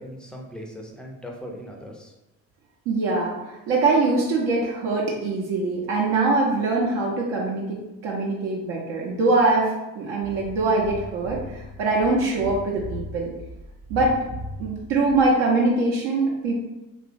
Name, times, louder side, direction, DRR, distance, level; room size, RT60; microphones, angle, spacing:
voice 1, 0.0-2.1, equal, ahead, 0 dB, 0.4 m, -39 dB
voice 2, 2.9-13.3 13.9-14.1 14.6-16.6, right 3 dB, 65° right, -2 dB, 0.7 m, -23 dB
sound 1, 10.2-15.3, equal, 50° right, 1.0 m, -38 dB
2.9 x 2.5 x 2.5 m, 1.0 s
figure-of-eight pair, 45°, 47 cm